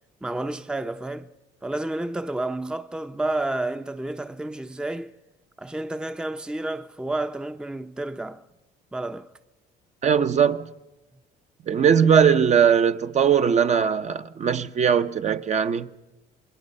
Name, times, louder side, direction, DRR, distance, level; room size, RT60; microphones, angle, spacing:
voice 1, 0.2-1.3 1.6-5.1 5.6-8.4 8.9-9.3, right 2 dB, 5° right, 0.7 m, -30 dB
voice 2, 10.0-10.6 11.7-15.9, right 7 dB, 45° right, 0.9 m, -20 dB
28.5 x 22.0 x 5.4 m
cardioid pair, 110°, 17 cm